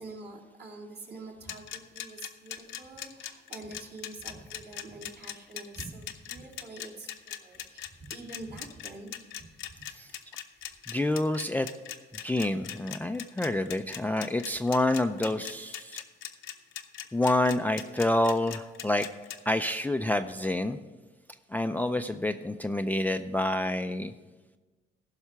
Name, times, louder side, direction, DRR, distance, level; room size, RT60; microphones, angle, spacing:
voice 1, 0.0-9.1 9.4-9.8, right 2 dB, 50° right, -1 dB, 2.5 m, -45 dB
sound 1, 1.5-19.4, left 10 dB, 75° left, 0.8 m, -40 dB
voice 2, 10.9-11.7 12.2-16.0 17.1-19.1 19.5-20.8 21.5-24.1, left 1 dB, 10° left, 9 dB, 0.4 m, -28 dB
15.5 x 5.7 x 5.7 m, 1.3 s
cardioid pair, 90°, 20 cm